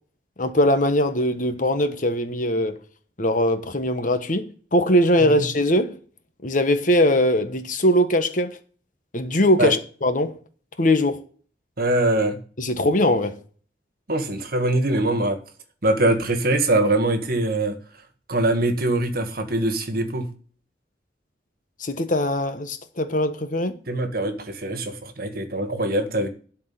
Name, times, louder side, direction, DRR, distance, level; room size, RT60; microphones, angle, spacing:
voice 1, 0.4-2.8 3.2-6.0 6.4-8.6 9.1-10.4 10.8-11.2 12.6-13.4 21.8-23.8, left 1 dB, 45° left, 1.3 m, -21 dB
voice 2, 11.8-12.4 14.1-15.4 15.8-17.8 18.3-20.3 23.9-26.3, right 2 dB, 55° right, 1.7 m, -23 dB
12.5 x 4.7 x 7.7 m
head